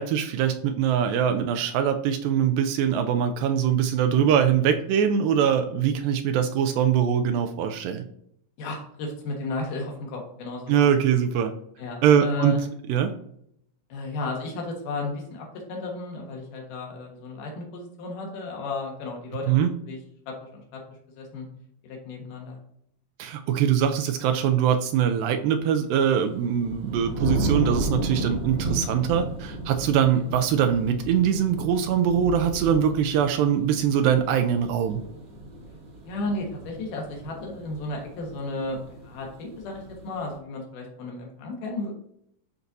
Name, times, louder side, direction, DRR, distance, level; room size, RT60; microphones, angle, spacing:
voice 1, 0.0-8.0 10.7-11.5 12.0-12.6 12.9-13.1 19.5-19.7 23.2-35.0, right 8 dB, 85° right, 6 dB, 2.2 m, -22 dB
voice 2, 8.6-10.9 11.8-12.6 13.9-20.0 20.3-20.8 21.1-21.5 21.8-22.6 30.1-30.3 36.0-41.9, left 2 dB, 70° left, 0 dB, 2.9 m, -33 dB
sound 1, 26.1-40.3, right 2 dB, 55° right, 1.2 m, -33 dB
11.5 x 4.0 x 2.6 m, 0.72 s
omnidirectional pair, 4.0 m